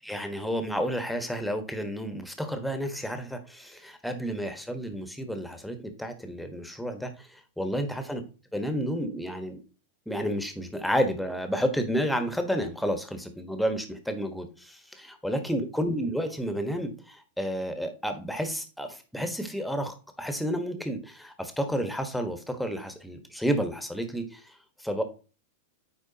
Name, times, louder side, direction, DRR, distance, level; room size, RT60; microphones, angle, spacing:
voice 1, 0.0-8.2 8.5-9.6 10.1-25.0, equal, ahead, 7 dB, 1.3 m, -31 dB
9.1 x 4.3 x 2.8 m, 0.33 s
hypercardioid pair, 100°, 0 cm